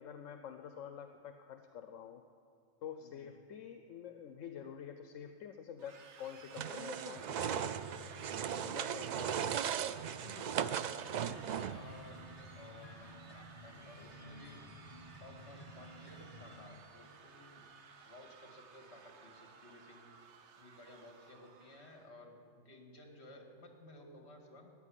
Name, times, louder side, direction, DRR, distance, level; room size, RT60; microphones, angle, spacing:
voice 1, 0.0-2.2 2.8-8.1 8.6-9.3, left 8 dB, 80° left, 7 dB, 1.1 m, -48 dB
sound 1, 5.8-22.1, right 5 dB, 65° right, 1.2 m, -57 dB
sound 2, 6.5-11.9, right 8 dB, 85° right, 0.4 m, -37 dB
voice 2, 9.1-9.9 10.2-12.2 12.6-14.6 15.2-17.6 18.0-20.2 20.6-24.7, left 1 dB, 55° left, 3 dB, 2.3 m, -56 dB
sound 3, 11.3-16.8, equal, 30° left, 1.4 m, -53 dB
14.0 x 9.3 x 9.9 m, 2.6 s
omnidirectional pair, 1.3 m